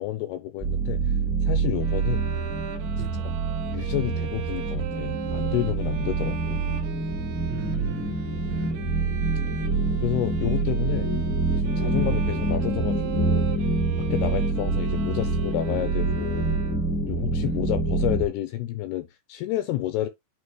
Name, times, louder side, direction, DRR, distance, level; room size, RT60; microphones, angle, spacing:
voice 1, 0.0-2.2 3.2-3.3 3.7-6.6 10.0-11.1 11.5-13.5 14.1-16.6 17.1-20.1, left 14 dB, 80° left, 2.4 m, -30 dB
sound 1, 0.6-18.3, right 3 dB, 5° right, 1.0 m, -26 dB
Bowed string instrument, 1.8-17.1, right 11 dB, 90° right, 3.4 m, -40 dB
voice 2, 7.5-8.9 11.9-12.2 14.2-14.4 17.4-17.6, right 8 dB, 70° right, 4.3 m, -39 dB
9.3 x 3.3 x 3.1 m
omnidirectional pair, 5.1 m